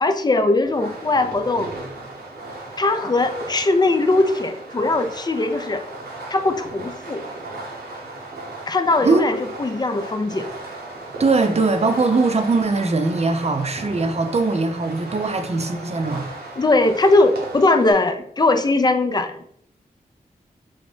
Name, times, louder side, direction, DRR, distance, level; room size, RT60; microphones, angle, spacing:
voice 1, 0.0-1.7 2.8-5.8 6.3-7.2 8.7-10.5 16.6-19.4, left 2 dB, 25° left, 0.4 m, -20 dB
Fireworks, 0.6-17.9, right 2 dB, 85° right, 0.8 m, -36 dB
voice 2, 11.2-16.3, right 3 dB, 40° right, 0.6 m, -20 dB
3.9 x 2.1 x 3.2 m
cardioid pair, 45°, 16 cm